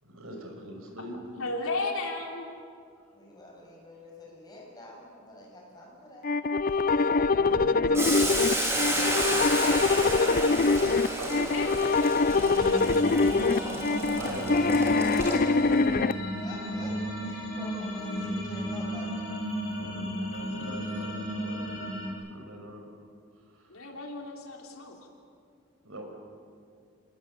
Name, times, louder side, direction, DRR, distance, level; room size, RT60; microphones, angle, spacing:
voice 1, 0.0-1.1 6.8-9.4 10.0-10.2 11.1-11.8 13.6-13.8 14.2-16.0 19.7-22.9 23.5-23.7 25.8-26.0, right 1 dB, 80° right, 2 dB, 5.7 m, -43 dB
voice 2, 1.1-2.6 11.3-12.8 20.2-20.3 23.7-25.1, left 2 dB, 75° left, 1 dB, 3.4 m, -35 dB
voice 3, 3.1-6.3 9.7-10.9 13.4-13.7 16.4-19.2 24.9-25.0, left 1 dB, 20° left, -2 dB, 6.9 m, -46 dB
sound 1, 6.2-16.1, left 3 dB, 40° left, 0.5 m, -24 dB
Boiling, 7.9-15.7, right 1 dB, 15° right, 4.1 m, -31 dB
sound 2, 12.2-22.1, equal, 60° left, 4.8 m, -34 dB
28.5 x 20.0 x 8.3 m, 2.3 s
head